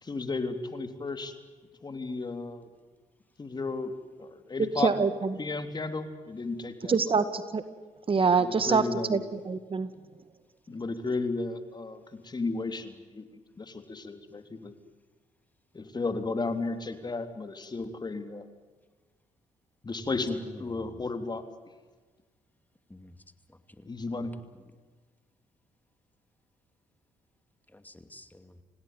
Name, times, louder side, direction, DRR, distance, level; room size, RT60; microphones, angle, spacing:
voice 1, 0.0-1.4 1.8-2.7 3.4-3.9 4.2-4.9 5.4-7.3 8.4-9.2 10.7-13.3 13.6-14.7 15.7-18.5 19.8-21.4 23.9-24.4, left 3 dB, 35° left, 8 dB, 3.4 m, -34 dB
voice 2, 4.6-5.3 6.9-7.6 8.1-8.8 9.1-9.9, right 5 dB, 45° right, 12 dB, 2.0 m, -25 dB
voice 3, 20.5-21.0 22.9-23.1 23.5-24.3 27.7-28.6, left 1 dB, 10° left, 9 dB, 2.6 m, -50 dB
27.5 x 17.5 x 9.5 m, 1.4 s
supercardioid pair, 65°, 13 cm